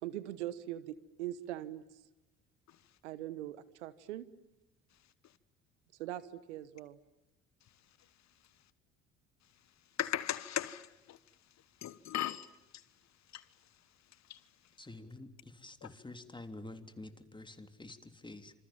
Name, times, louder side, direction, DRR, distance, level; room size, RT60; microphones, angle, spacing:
voice 1, 0.0-1.8 3.0-4.3 6.0-7.0, right 13 dB, 80° right, 1.3 m, -41 dB
voice 2, 10.0-11.2 11.8-12.5 13.3-13.4 14.3-14.4, left 12 dB, 50° left, 1.3 m, -36 dB
voice 3, 14.8-18.5, left 2 dB, 15° left, 3.3 m, -49 dB
27.5 x 27.0 x 7.4 m
hypercardioid pair, 55°, 34 cm